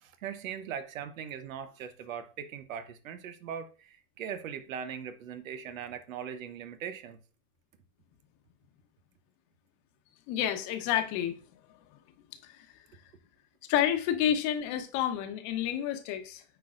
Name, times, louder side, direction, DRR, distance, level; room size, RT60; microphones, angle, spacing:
voice 1, 0.0-7.2, right 8 dB, 85° right, 1.0 m, -40 dB
voice 2, 10.3-11.4 12.4-12.7 13.7-16.4, left 10 dB, 45° left, 1.1 m, -29 dB
9.1 x 4.5 x 2.6 m
supercardioid pair, 130°, 39 cm